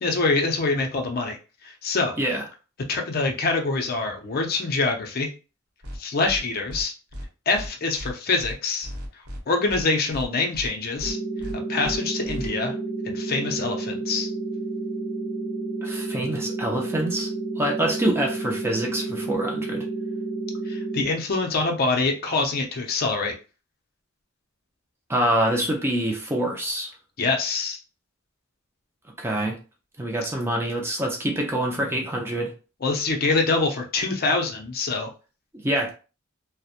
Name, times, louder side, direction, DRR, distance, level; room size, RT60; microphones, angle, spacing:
voice 1, 0.0-2.2 2.9-5.3 6.0-6.9 7.5-8.9 9.5-11.2 11.7-12.7 13.0-14.3 20.7-23.4 27.2-27.8 32.8-35.1, left 3 dB, 45° left, 0.5 m, -25 dB
sound 1, 5.8-6.0 6.2-6.4 6.7-6.8 7.1-7.3 7.5-7.7 8.0-8.1 8.4-8.5 8.8-9.4 9.7-9.8 10.1-10.3 10.5-10.7 11.0-11.1 11.4-11.5 11.8-12.0 12.2-12.5, equal, 80° right, 0.9 m, -35 dB
sound 2, 11.0-21.0, right 3 dB, 55° right, 0.9 m, -30 dB
voice 2, 15.8-17.3 17.6-19.8 25.1-26.9 29.2-29.6 30.0-32.5 35.5-35.9, right 1 dB, 10° right, 0.4 m, -25 dB
2.8 x 2.0 x 2.4 m
head